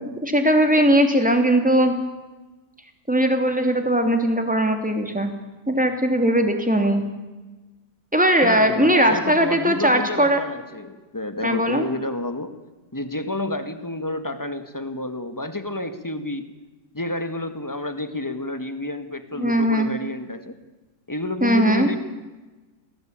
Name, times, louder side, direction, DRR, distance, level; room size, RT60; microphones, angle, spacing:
voice 1, 0.0-1.9 3.1-5.3 5.7-7.0 8.1-10.4 11.4-11.8 19.4-19.9 21.4-21.9, right 1 dB, 5° right, 5 dB, 2.9 m, -19 dB
voice 2, 8.4-12.6 12.9-16.5 16.9-20.6 21.1-22.0, left 2 dB, 10° left, 9 dB, 1.7 m, -29 dB
28.0 x 18.0 x 9.0 m, 1.2 s
omnidirectional pair, 1.9 m